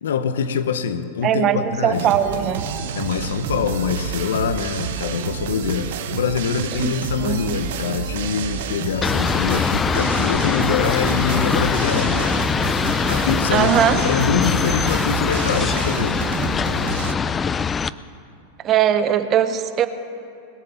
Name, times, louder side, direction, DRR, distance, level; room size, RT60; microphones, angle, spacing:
voice 1, 0.0-2.1 2.9-12.3 13.1-13.7 14.0-16.2, left 7 dB, 80° left, 11 dB, 0.8 m, -24 dB
voice 2, 1.2-2.7 6.7-7.6 13.5-14.0 18.6-19.9, right 9 dB, 35° right, 11 dB, 0.8 m, -20 dB
sound 1, 1.9-17.1, right 7 dB, 70° right, 1.0 m, -29 dB
sound 2, 9.0-17.9, left 6 dB, 20° left, 0.3 m, -22 dB
20.5 x 7.1 x 7.2 m, 2.5 s
hypercardioid pair, 110°, 0 cm